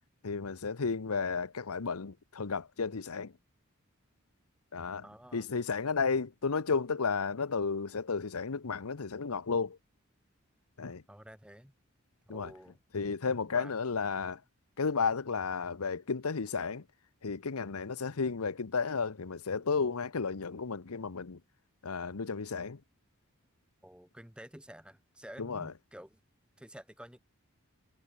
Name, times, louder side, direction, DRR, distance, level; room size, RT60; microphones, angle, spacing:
voice 1, 0.2-3.3 4.7-5.0 5.3-9.8 10.8-11.0 12.3-12.5 12.9-14.4 14.8-16.8 17.2-21.4 21.8-22.8 25.4-25.7, left 5 dB, 85° left, 0.9 m, -33 dB
voice 2, 5.0-5.5 11.1-11.7 12.2-12.8 13.5-13.7 23.8-26.2 26.6-27.2, equal, 5° right, 1.2 m, -50 dB
head